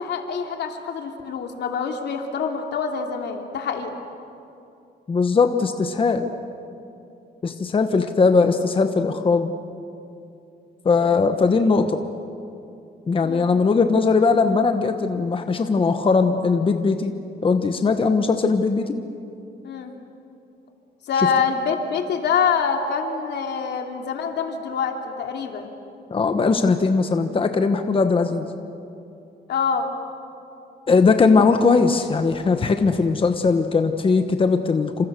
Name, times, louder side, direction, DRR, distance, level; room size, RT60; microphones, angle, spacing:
voice 1, 0.0-3.9 13.2-13.5 19.6-19.9 21.1-25.7 29.5-29.9, left 6 dB, 80° left, 3 dB, 2.8 m, -25 dB
voice 2, 5.1-6.3 7.4-9.5 10.8-12.0 13.1-17.1 17.4-19.0 21.2-21.3 26.1-28.5 30.9-35.0, left 4 dB, 30° left, 7 dB, 1.2 m, -19 dB
29.0 x 26.5 x 6.8 m, 2.7 s
cardioid pair, 135°, 17 cm